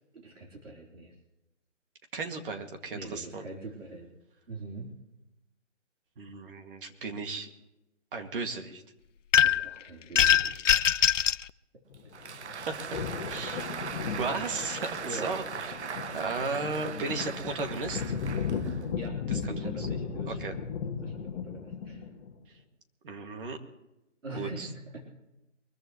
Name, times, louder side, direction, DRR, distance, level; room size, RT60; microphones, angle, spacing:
voice 1, 0.1-1.1 2.9-4.1 4.5-4.9 9.4-10.6 15.0-15.3 19.0-22.0 24.2-25.1, right 2 dB, 90° right, -2 dB, 4.0 m, -43 dB
voice 2, 2.1-3.5 6.2-7.5 8.1-8.8 12.7-12.9 13.3-13.9 14.2-18.1 19.3-19.4 19.8-19.9 20.3-20.6 22.5-22.6 23.0-23.6 24.3-24.7, right 4 dB, 45° right, 4 dB, 2.3 m, -35 dB
sound 1, 9.3-9.7 10.2-11.4, left 9 dB, 80° left, 0.6 m, -22 dB
sound 2, 11.9-22.3, left 6 dB, 25° left, 1.9 m, -36 dB
Applause, 11.9-19.1, right 7 dB, 65° right, 0.8 m, -39 dB
24.0 x 14.5 x 3.1 m, 0.92 s
hypercardioid pair, 155°, 37 cm